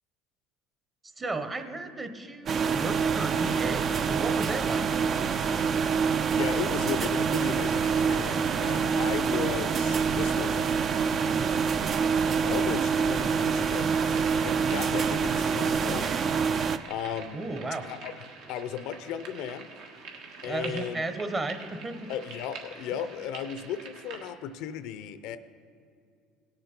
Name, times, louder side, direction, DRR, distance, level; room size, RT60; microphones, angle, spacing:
voice 1, 1.2-4.9 17.3-17.9 20.4-22.1, right 2 dB, 25° right, 8 dB, 1.0 m, -34 dB
sound 1, 2.5-16.8, right 6 dB, 40° right, 0.4 m, -26 dB
voice 2, 6.4-10.6 12.4-16.2 16.9-17.4 17.8-18.1 18.5-19.7 20.4-21.0 22.1-25.4, left 9 dB, 70° left, 12 dB, 0.5 m, -35 dB
sound 2, 12.8-24.3, right 4 dB, 70° right, 1.5 m, -46 dB
18.0 x 6.7 x 4.4 m, 2.4 s
supercardioid pair, 100°, 0 cm